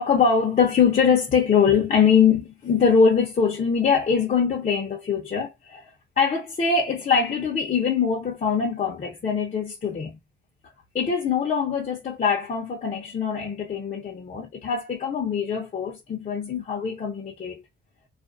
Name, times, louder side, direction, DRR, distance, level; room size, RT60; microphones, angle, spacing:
voice 1, 0.0-10.2 10.9-17.6, left 6 dB, 40° left, 0.8 m, -23 dB
2.5 x 2.0 x 2.5 m
cardioid pair, 90°, 20 cm